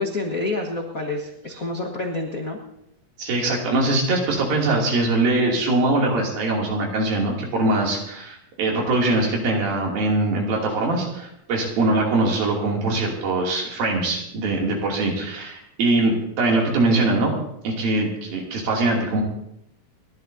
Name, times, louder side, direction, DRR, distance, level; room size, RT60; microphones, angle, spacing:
voice 1, 0.0-2.6, left 2 dB, 65° left, 0 dB, 0.8 m, -28 dB
voice 2, 3.2-17.3 17.6-19.2, right 2 dB, 80° right, -1 dB, 4.5 m, -22 dB
29.0 x 12.0 x 2.7 m, 0.79 s
omnidirectional pair, 4.1 m